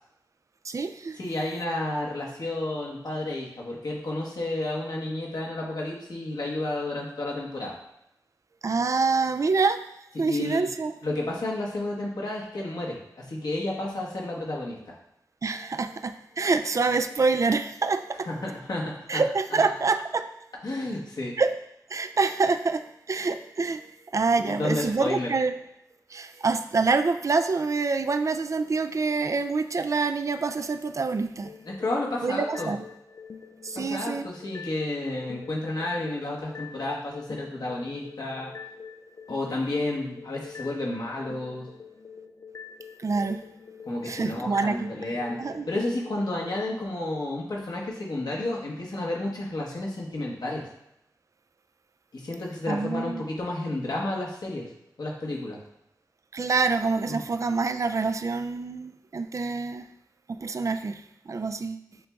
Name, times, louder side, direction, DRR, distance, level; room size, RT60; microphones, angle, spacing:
voice 1, 0.6-1.2 8.6-9.8 10.2-10.9 15.4-18.3 19.1-20.3 21.4-21.5 21.9-23.9 24.1-25.5 26.1-31.5 32.2-32.8 33.6-34.3 43.0-43.4 44.1-45.0 45.4-45.7 52.7-53.3 56.3-59.9 60.3-61.9, right 4 dB, 45° right, 10 dB, 0.3 m, -26 dB
voice 2, 1.2-7.7 10.3-10.7 11.0-14.9 18.2-19.2 19.5-19.7 20.6-21.3 24.4-25.3 31.6-32.7 33.7-38.5 39.3-41.7 43.9-45.4 45.7-50.6 52.1-54.6 55.0-55.6 57.1-57.2, left 2 dB, 70° left, -3 dB, 1.2 m, -31 dB
sound 1, 31.4-46.8, left 6 dB, 50° left, 0.3 m, -45 dB
7.5 x 2.9 x 2.3 m, 0.80 s
cardioid pair, 45°, 7 cm